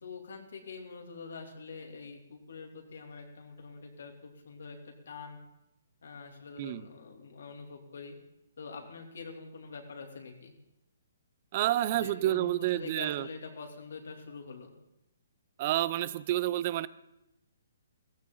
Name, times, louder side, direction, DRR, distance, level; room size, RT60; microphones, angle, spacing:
voice 1, 0.0-5.4 6.0-8.2 8.6-10.5 11.9-14.7, left 4 dB, 75° left, 2 dB, 3.1 m, -45 dB
voice 2, 11.5-13.3 15.6-16.9, right 14 dB, 40° right, 17 dB, 0.6 m, -29 dB
16.5 x 15.0 x 3.9 m, 0.85 s
hypercardioid pair, 145°, 0 cm